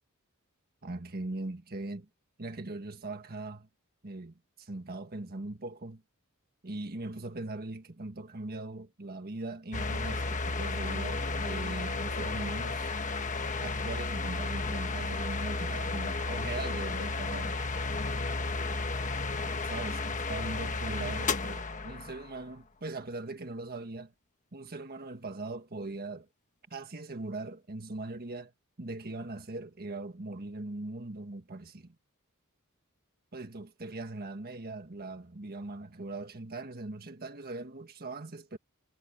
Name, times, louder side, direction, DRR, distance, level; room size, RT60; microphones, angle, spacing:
voice 1, 0.8-2.1 2.4-3.7 4.0-6.0 6.6-13.0 13.6-17.6 19.4-24.1 24.5-26.3 26.7-28.5 28.8-31.9 33.3-38.6, right 2 dB, 45° right, 1.6 m, -40 dB
sound 1, 9.7-22.4, left 3 dB, 35° left, 1.3 m, -33 dB
head